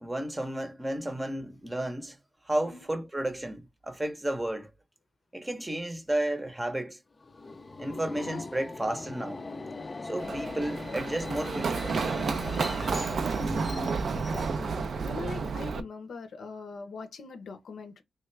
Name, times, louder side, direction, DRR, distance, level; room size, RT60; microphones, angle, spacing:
voice 1, 0.0-2.2 2.5-4.7 5.3-7.0 7.8-9.4 10.0-11.9, right 1 dB, 20° right, 0.7 m, -32 dB
Subway metro underground, 7.2-14.9, left 3 dB, 35° left, 0.4 m, -40 dB
voice 2, 10.1-10.4 12.5-12.8 14.1-14.7 15.0-18.0, left 4 dB, 80° left, 0.6 m, -42 dB
Run, 10.2-15.8, right 5 dB, 65° right, 0.4 m, -31 dB
3.2 x 2.3 x 3.2 m
cardioid pair, 75°, 0 cm